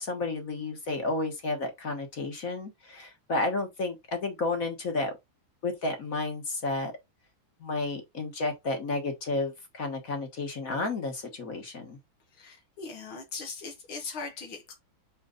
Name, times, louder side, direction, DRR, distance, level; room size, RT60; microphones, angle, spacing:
voice 1, 0.0-5.1 5.6-6.9 7.6-12.0, left 2 dB, 45° left, 1.7 m, -31 dB
voice 2, 12.4-14.8, left 4 dB, 75° left, 2.0 m, -39 dB
5.5 x 4.4 x 3.9 m
omnidirectional pair, 2.3 m